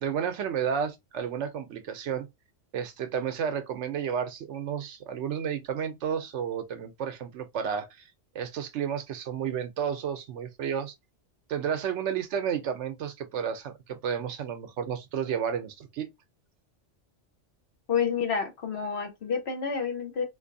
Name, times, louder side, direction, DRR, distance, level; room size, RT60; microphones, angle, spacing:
voice 1, 0.0-2.3 2.7-8.1 8.3-10.9 11.5-16.1, right 8 dB, 75° right, 0.9 m, -32 dB
voice 2, 17.9-20.2, left 6 dB, 60° left, 1.2 m, -29 dB
3.9 x 2.5 x 2.6 m
omnidirectional pair, 1.3 m